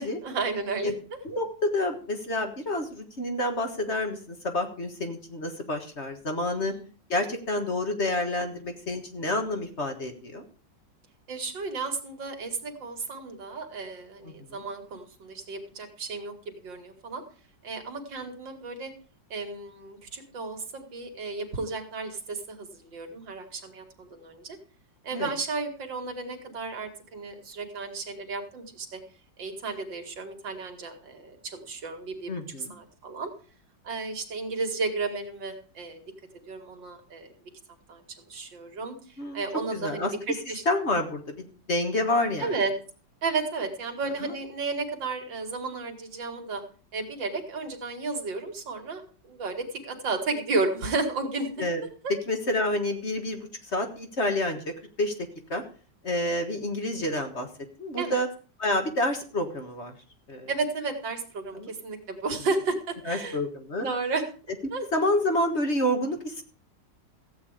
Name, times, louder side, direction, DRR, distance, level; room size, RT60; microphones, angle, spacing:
voice 1, 0.0-1.2 6.5-6.9 11.3-17.2 17.6-18.9 19.3-24.6 25.0-29.0 29.4-32.3 32.6-33.3 33.8-36.1 36.5-37.3 37.9-38.0 38.3-40.1 40.5-40.6 42.4-42.7 43.2-46.6 46.9-51.5 52.0-52.1 58.0-58.2 60.5-63.4 63.8-64.2 64.7-64.8, right 3 dB, 80° right, 5 dB, 2.7 m, -33 dB
voice 2, 1.2-6.7 7.1-10.5 14.2-14.6 25.1-25.3 32.3-32.7 39.2-39.4 39.7-40.1 40.7-42.5 44.2-44.3 51.6-51.8 52.3-54.6 55.0-55.1 55.5-55.6 56.0-57.5 57.8-58.3 58.6-59.9 60.3-60.5 61.6-61.7 63.1-63.9 64.8-66.4, left 1 dB, 40° left, 5 dB, 1.8 m, -28 dB
14.5 x 8.7 x 5.0 m, 0.40 s
omnidirectional pair, 2.0 m